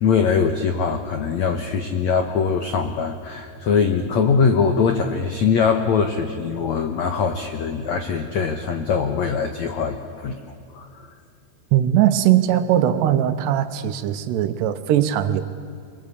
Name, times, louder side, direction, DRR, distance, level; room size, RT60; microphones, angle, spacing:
voice 1, 0.0-10.4 10.7-10.9, left 5 dB, 80° left, 6 dB, 1.6 m, -22 dB
voice 2, 11.7-15.4, right 11 dB, 80° right, 9 dB, 3.0 m, -19 dB
26.0 x 23.0 x 8.4 m, 2.2 s
omnidirectional pair, 5.0 m